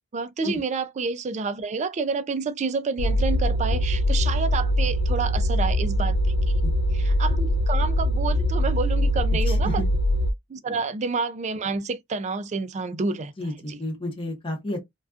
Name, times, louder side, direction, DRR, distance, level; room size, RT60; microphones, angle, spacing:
voice 1, 0.1-6.1 6.9-9.8 10.5-13.3 13.7-13.8, right 4 dB, 35° right, 0.3 m, -29 dB
sound 1, 3.0-10.3, equal, 75° left, 0.3 m, -22 dB
voice 2, 9.5-9.8 10.7-10.8 13.4-14.8, left 1 dB, 25° left, 0.7 m, -31 dB
2.3 x 2.2 x 2.4 m
head